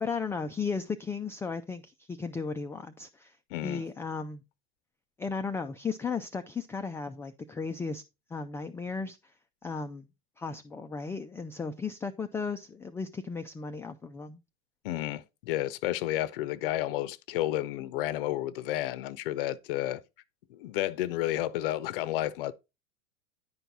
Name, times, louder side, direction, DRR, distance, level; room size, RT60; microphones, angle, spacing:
voice 1, 0.0-3.4 3.6-4.4 5.2-8.0 8.3-9.3 9.6-10.1 10.4-14.4, left 5 dB, 10° left, 0.3 m, -35 dB
voice 2, 3.5-3.8 14.8-20.0 20.5-22.5, left 14 dB, 60° left, 0.6 m, -31 dB
10.0 x 4.5 x 4.0 m
hypercardioid pair, 95°, 31 cm